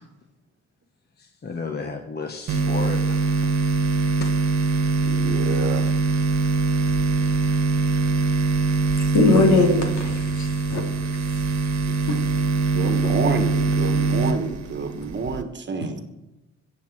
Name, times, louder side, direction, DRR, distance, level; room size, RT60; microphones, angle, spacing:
voice 1, 1.2-3.5, left 4 dB, 35° left, 4 dB, 1.3 m, -33 dB
sound 1, 2.5-15.4, right 3 dB, 65° right, 1.4 m, -23 dB
voice 2, 5.0-5.9 12.7-16.0, right 4 dB, 35° right, 7 dB, 1.4 m, -28 dB
voice 3, 9.1-10.8 12.1-12.2 13.0-13.1 15.8-15.9, left 3 dB, 70° left, 2 dB, 3.1 m, -20 dB
20.5 x 7.7 x 4.7 m, 1.1 s
cardioid pair, 90°, 30 cm